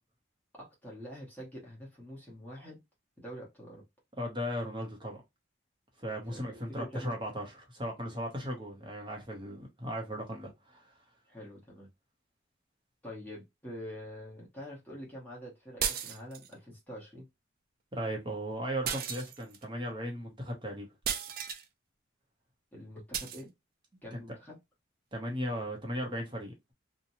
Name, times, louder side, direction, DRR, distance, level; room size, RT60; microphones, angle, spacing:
voice 1, 0.5-2.8 3.2-3.8 6.2-7.2 11.3-11.9 13.0-17.3 22.7-23.5 24.0-24.6, equal, 10° left, 0.9 m, -46 dB
voice 2, 4.2-5.2 6.0-10.9 17.9-20.9 24.1-24.2 25.1-26.7, equal, 25° right, 0.7 m, -37 dB
sound 1, 15.8-16.5 18.8-19.6 21.0-21.6 23.1-23.4, right 8 dB, 45° right, 0.4 m, -34 dB
2.8 x 2.2 x 2.6 m
head